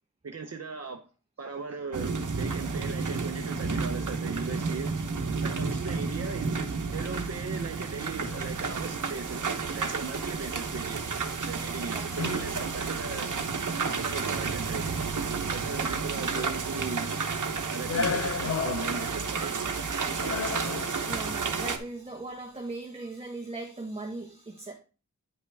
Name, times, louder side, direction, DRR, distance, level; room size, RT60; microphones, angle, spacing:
voice 1, 0.2-1.0 1.4-5.1 5.4-11.2 11.5-13.3 13.8-15.1 15.5-17.1 17.7-19.7, right 4 dB, 55° right, 0.8 m, -38 dB
sound 1, 1.9-21.8, right 5 dB, 75° right, 1.0 m, -31 dB
sound 2, 7.0-7.3 8.1-8.8 9.5-9.6 9.9-10.2 11.1-11.8 12.1-12.8 13.7-14.2 17.8-19.4 20.2-21.2, left 5 dB, 50° left, 0.5 m, -35 dB
voice 2, 20.1-24.7, right 2 dB, 20° right, 1.2 m, -39 dB
9.4 x 5.6 x 3.4 m
wide cardioid pair, 85°, 31 cm